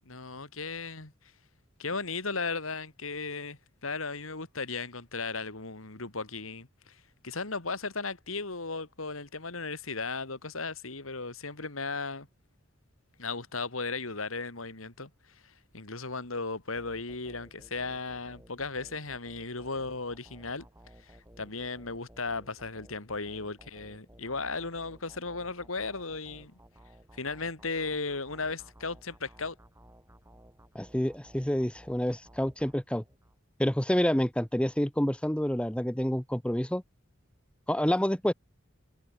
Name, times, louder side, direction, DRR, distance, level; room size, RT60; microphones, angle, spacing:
voice 1, 0.0-1.1 1.8-6.9 7.2-12.3 13.2-15.1 15.7-20.6 21.4-26.5 27.2-29.5, left 4 dB, 90° left, 3.1 m, -36 dB
sound 1, 16.8-33.4, right 1 dB, 15° right, 4.5 m, -56 dB
voice 2, 30.7-33.0 33.6-36.8 37.7-38.3, equal, 5° left, 0.8 m, -28 dB
head